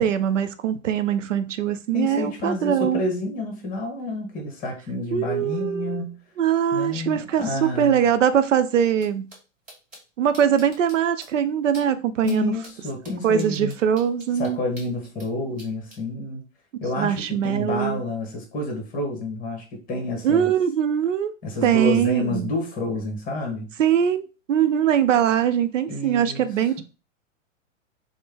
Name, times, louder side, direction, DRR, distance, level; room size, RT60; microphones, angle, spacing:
voice 1, 0.0-3.0 5.1-6.0 6.4-9.3 10.2-12.5 13.2-14.6 17.0-18.0 20.2-21.3 21.6-22.5 23.8-26.8, right 9 dB, 70° right, 0.5 m, -22 dB
voice 2, 1.9-6.2 6.7-8.0 12.2-13.7 14.4-16.4 16.8-20.5 21.4-23.7 25.9-26.5, left 2 dB, 20° left, 1.1 m, -29 dB
sound 1, 9.0-9.1 9.3-9.4 9.7-10.0 10.3-10.9 11.2-11.3 11.7-11.8 12.2-12.4 12.6-15.3 15.6-16.0, right 1 dB, 20° right, 1.7 m, -45 dB
3.3 x 2.1 x 3.3 m
figure-of-eight pair, 105°, 39 cm